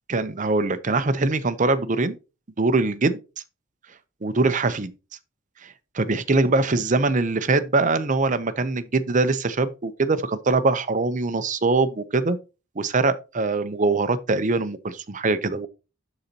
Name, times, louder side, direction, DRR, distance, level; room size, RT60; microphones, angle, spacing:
voice 1, 0.1-2.1 2.6-3.2 4.2-4.9 5.6-12.4 12.8-15.7, right 3 dB, 40° right, 0.7 m, -23 dB
12.0 x 4.0 x 2.9 m
head